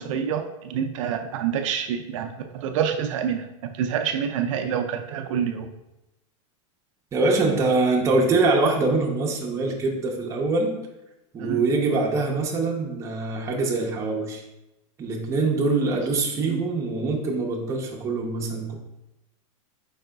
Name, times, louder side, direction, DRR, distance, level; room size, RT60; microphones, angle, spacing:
voice 1, 0.0-5.7 11.4-11.6 16.4-16.6, right 8 dB, 65° right, 6 dB, 0.4 m, -27 dB
voice 2, 7.1-10.7 11.3-14.4 15.0-18.7, right 3 dB, 15° right, -1 dB, 0.7 m, -24 dB
4.8 x 4.7 x 2.3 m, 0.93 s
supercardioid pair, 155°, 17 cm